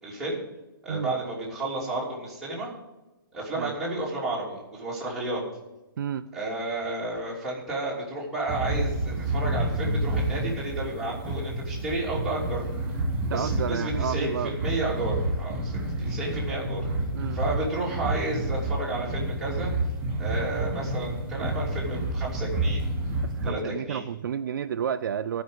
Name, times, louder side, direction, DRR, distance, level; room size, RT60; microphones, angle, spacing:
voice 1, 0.0-0.4 0.8-2.7 3.3-5.4 6.3-12.6 13.3-15.7 16.0-16.8 17.3-19.7 20.2-22.8 23.4-24.0, right 2 dB, ahead, -8 dB, 2.9 m, -32 dB
voice 2, 6.0-6.3 13.3-14.5 16.0-16.2 17.1-17.4 23.2-25.4, right 8 dB, 60° right, 11 dB, 0.4 m, -31 dB
sound 1, 8.5-23.5, right 1 dB, 20° right, 2.9 m, -29 dB
12.5 x 5.2 x 7.9 m, 1.0 s
hypercardioid pair, 160°, 12 cm